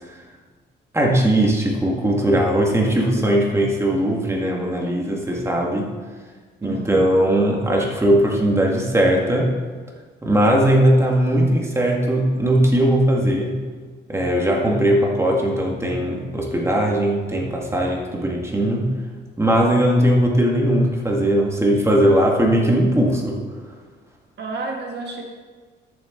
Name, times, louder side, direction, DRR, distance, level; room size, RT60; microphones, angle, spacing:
voice 1, 0.9-5.9 6.6-9.5 10.2-13.5 14.1-18.9 19.4-23.4, right 1 dB, 15° right, -1 dB, 2.0 m, -19 dB
voice 2, 6.6-7.2 24.4-25.2, right 3 dB, 60° right, 1 dB, 1.7 m, -30 dB
13.0 x 7.2 x 3.9 m, 1.4 s
cardioid pair, 90°, 20 cm